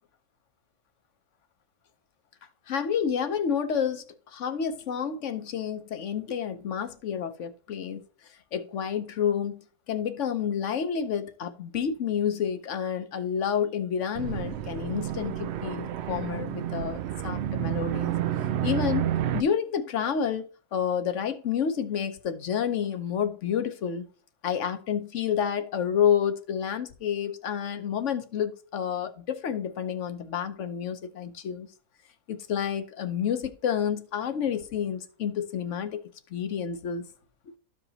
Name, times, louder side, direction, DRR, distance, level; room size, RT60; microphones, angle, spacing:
voice 1, 2.7-8.0 8.5-18.1 18.6-24.1 24.4-31.7 32.3-37.1, left 8 dB, 55° left, 1.0 m, -29 dB
sound 1, 14.2-19.4, right 11 dB, 75° right, 0.6 m, -30 dB
13.5 x 4.9 x 2.8 m
omnidirectional pair, 1.7 m